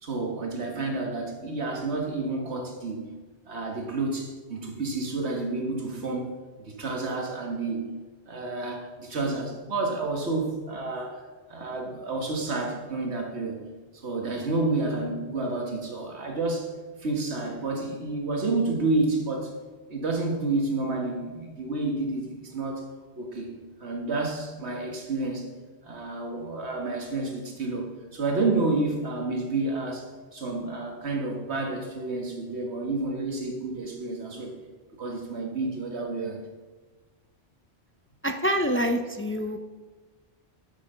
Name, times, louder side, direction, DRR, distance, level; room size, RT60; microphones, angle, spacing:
voice 1, 0.0-3.0 3.5-6.3 6.6-7.9 8.3-11.2 11.5-13.7 13.9-16.7 17.0-19.5 19.9-22.8 23.2-25.5 25.8-34.5 35.0-36.4, right 3 dB, 80° right, 1 dB, 1.8 m, -30 dB
voice 2, 38.2-39.6, equal, 20° left, 6 dB, 0.3 m, -26 dB
8.9 x 7.5 x 5.5 m, 1.3 s
omnidirectional pair, 1.1 m